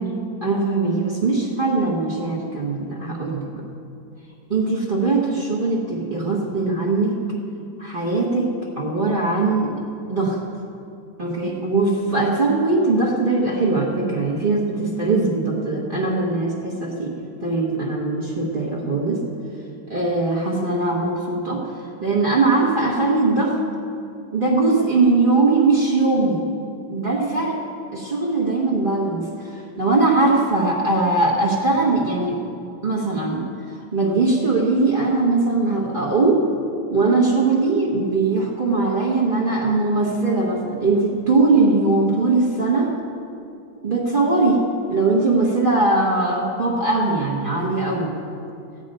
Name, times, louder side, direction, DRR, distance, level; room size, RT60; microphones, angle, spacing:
voice 1, 0.0-3.6 4.5-7.2 7.8-9.7 10.1-10.4 11.2-17.1 17.4-19.2 19.9-21.7 22.0-23.6 24.3-26.4 26.9-27.6 27.9-32.4 32.8-33.4 33.9-36.4 36.9-42.9 43.8-44.6 44.9-48.1, right 3 dB, 30° right, -3 dB, 1.4 m, -20 dB
14.5 x 5.4 x 8.8 m, 2.6 s
omnidirectional pair, 2.1 m